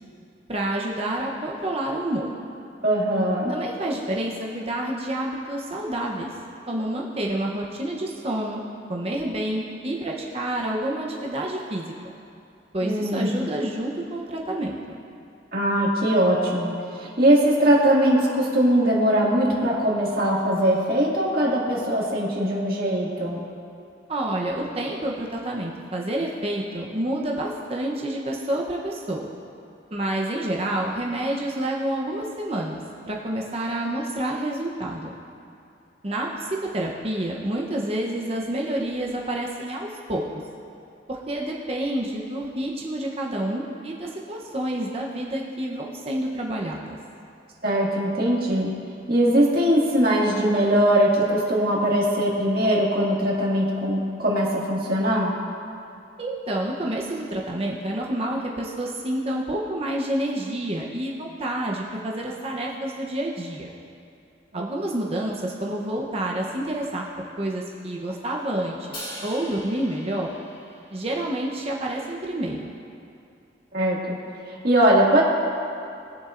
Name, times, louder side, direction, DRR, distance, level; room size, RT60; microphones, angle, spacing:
voice 1, 0.5-2.3 3.5-6.3 6.7-8.6 8.9-11.9 12.7-15.0 24.1-29.3 29.9-35.1 36.0-40.2 41.1-47.0 56.2-63.7 64.5-67.1 67.4-68.9 69.2-70.3 70.9-72.7, right 1 dB, 35° right, -1 dB, 0.8 m, -28 dB
voice 2, 2.8-3.5 12.8-13.3 15.5-23.4 47.6-48.7 49.1-55.3 64.5-64.6 73.7-74.2 74.5-75.2, right 1 dB, 55° right, -4 dB, 2.0 m, -21 dB
Crash cymbal, 68.9-71.3, equal, 30° left, 2.5 m, -40 dB
21.5 x 7.1 x 2.5 m, 2.6 s
head